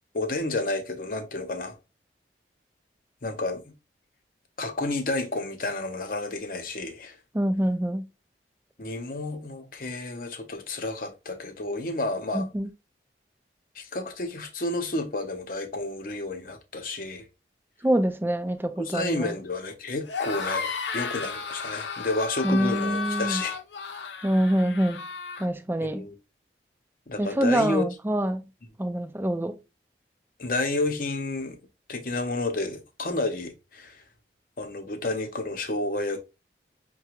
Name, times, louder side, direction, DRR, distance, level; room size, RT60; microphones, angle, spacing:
voice 1, 0.1-1.7 3.2-3.6 4.6-7.2 8.8-12.5 13.8-17.3 18.8-23.6 25.8-26.2 27.1-27.8 30.4-31.6 31.9-34.0 34.6-36.2, left 2 dB, 50° left, 0.8 m, -30 dB
voice 2, 7.3-8.0 12.3-12.7 17.8-19.4 22.4-23.4 24.2-25.0 25.4-26.0 27.2-28.4 28.8-29.5, right 1 dB, 10° right, 0.4 m, -25 dB
sound 1, 20.0-25.5, left 5 dB, 80° left, 0.7 m, -33 dB
5.8 x 2.3 x 2.9 m
head